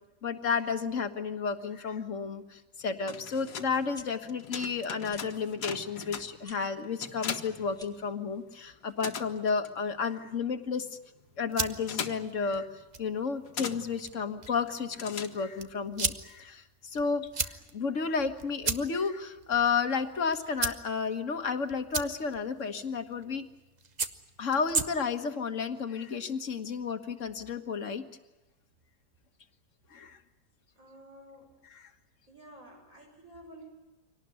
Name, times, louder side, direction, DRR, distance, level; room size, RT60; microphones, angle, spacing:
voice 1, 0.2-10.9 11.4-12.7 13.0-23.4 24.4-28.0 29.9-30.2 31.7-31.9, left 5 dB, 50° left, 7 dB, 1.7 m, -32 dB
sound 1, 2.8-8.4 8.7-15.8, left 7 dB, 80° left, 1.8 m, -41 dB
sound 2, 3.9-4.1 5.1-5.3 6.4-6.6 7.7-8.1, equal, ahead, 1.9 m, -52 dB
sound 3, 11.2-25.3, right 4 dB, 30° right, 1.0 m, -38 dB
voice 2, 30.8-31.5 32.3-33.7, right 1 dB, 55° right, 2 dB, 6.3 m, -51 dB
24.5 x 18.5 x 9.6 m, 1.1 s
omnidirectional pair, 1.7 m